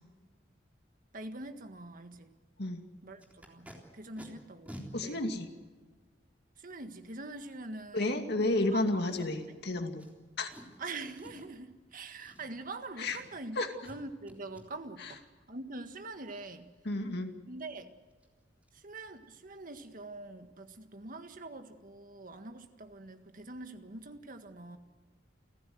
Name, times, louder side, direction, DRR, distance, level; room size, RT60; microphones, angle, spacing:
voice 1, 1.1-2.3 3.0-5.2 6.6-8.0 8.3-9.3 10.8-15.2 15.5-16.7 17.5-17.9 18.7-24.8, right 2 dB, 50° right, 8 dB, 1.7 m, -44 dB
Packing tape duct tape, 3.2-3.8 4.2-4.3 4.7-4.9 5.6-5.7 9.1-9.5 10.0-10.1 10.5-10.8 11.1-11.5 12.2-12.7 13.0-13.4 13.8-14.0 14.3-14.6 17.7-17.8 18.1-18.3 18.6-18.8 19.0-19.3 19.6-19.7, equal, 10° right, 3.6 m, -50 dB
voice 2, 4.9-5.5 7.9-10.0 10.4-10.5 13.0-13.2 13.6-13.7 15.0-15.1 16.8-17.3, left 2 dB, 60° left, 5 dB, 2.4 m, -31 dB
29.5 x 15.0 x 7.9 m, 1.4 s
head